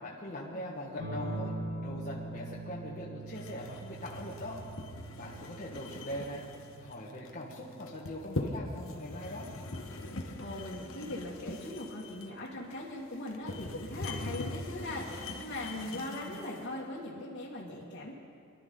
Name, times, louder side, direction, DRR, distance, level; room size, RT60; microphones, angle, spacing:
voice 1, 0.0-1.5 1.8-4.6 5.1-6.4 6.8-9.5, left 1 dB, 40° left, -6 dB, 1.6 m, -41 dB
sound 1, 1.0-10.1 11.5-12.1, right 2 dB, 85° right, 3.8 m, -44 dB
sound 2, 3.3-16.6, left 2 dB, 75° left, 1.2 m, -42 dB
voice 2, 10.2-18.1, left 1 dB, 60° left, -6 dB, 2.0 m, -40 dB
24.0 x 12.5 x 3.8 m, 2.4 s
head